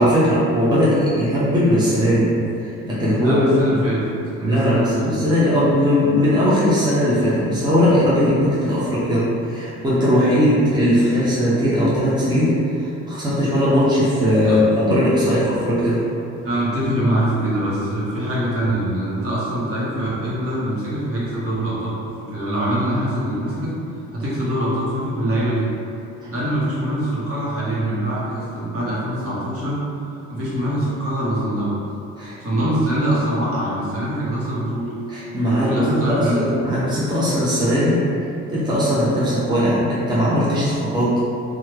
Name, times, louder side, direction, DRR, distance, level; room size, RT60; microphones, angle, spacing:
voice 1, 0.0-2.3 2.6-3.8 4.4-12.5 12.8-16.0 26.2-26.3 32.2-32.3 35.1-38.0 38.5-41.1, equal, 15° right, -10 dB, 0.8 m, -19 dB
voice 2, 3.2-4.0 4.3-5.3 14.4-14.7 16.4-22.0 22.3-23.7 24.1-25.7 26.3-29.8 30.3-31.8 32.4-34.9 35.5-36.4, right 1 dB, 50° right, -9 dB, 1.1 m, -23 dB
3.0 x 2.4 x 3.0 m, 2.6 s
cardioid pair, 90°, 30 cm